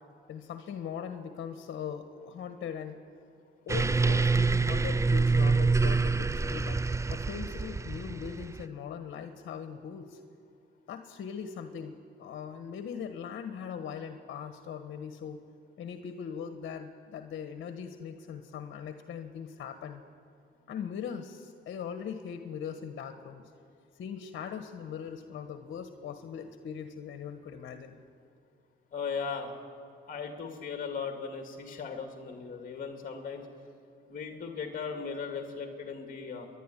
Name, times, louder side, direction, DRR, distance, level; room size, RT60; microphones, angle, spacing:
voice 1, 0.3-3.0 3.7-6.8 7.1-10.2 10.9-15.4 15.8-20.0 20.7-23.5 23.9-28.0, left 7 dB, 65° left, 7 dB, 1.4 m, -40 dB
sound 1, 3.7-8.6, right 4 dB, 15° right, 0.4 m, -26 dB
voice 2, 28.9-29.5 30.1-33.5 34.1-36.5, left 5 dB, 45° left, 4 dB, 2.4 m, -37 dB
29.0 x 11.5 x 10.0 m, 2.4 s
cardioid pair, 90°, 20 cm